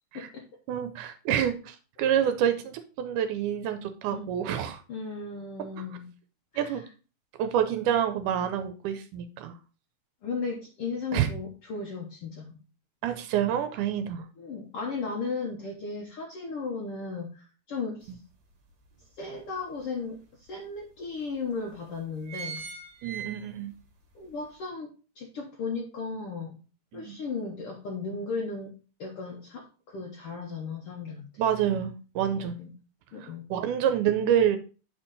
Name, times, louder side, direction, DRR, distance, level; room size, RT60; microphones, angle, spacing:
voice 1, 0.1-0.5 4.1-4.4 4.9-6.1 6.5-6.8 10.2-12.6 14.4-18.1 19.2-22.7 24.1-26.6 26.9-28.7 29.0-31.3 32.3-32.7 33.1-33.5, left 4 dB, 60° left, 0 dB, 1.6 m, -36 dB
voice 2, 0.7-4.8 6.6-6.8 7.4-9.5 11.1-11.3 13.0-14.3 23.0-23.7 26.9-27.2 31.4-32.6 33.2-34.6, right 9 dB, 85° right, 9 dB, 2.1 m, -27 dB
sound 1, 18.0-18.1 18.6-19.8 20.4-20.5 20.8-20.9 21.5-21.7 22.0-23.8 24.2-24.3, right 6 dB, 45° right, 1.7 m, -40 dB
7.9 x 4.5 x 4.0 m, 0.35 s
omnidirectional pair, 3.7 m